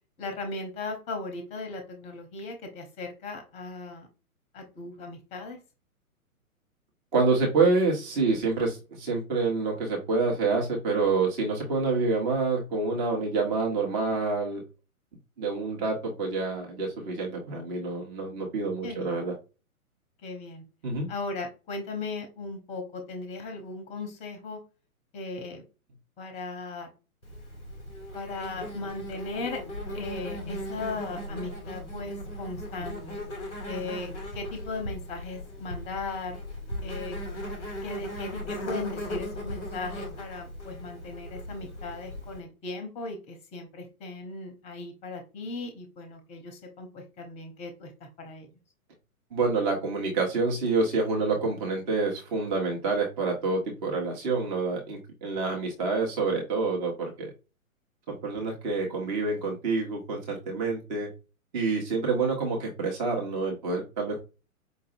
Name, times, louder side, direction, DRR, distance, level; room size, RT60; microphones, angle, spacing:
voice 1, 0.2-4.1 4.5-5.6 18.8-19.1 20.2-20.6 21.1-24.6 25.1-25.7 26.2-26.9 28.1-29.6 29.9-33.2 33.7-36.4 36.8-37.2 37.8-47.9 48.2-48.5, left 3 dB, 15° left, 5 dB, 0.8 m, -37 dB
voice 2, 7.1-14.6 15.4-19.3 20.8-21.1 49.3-57.3 58.1-61.1 61.5-64.2, right 3 dB, 30° right, 0 dB, 1.1 m, -27 dB
Insect, 27.2-42.4, equal, ahead, 0.3 m, -38 dB
5.1 x 2.6 x 2.6 m, 0.30 s
figure-of-eight pair, 120°, 44 cm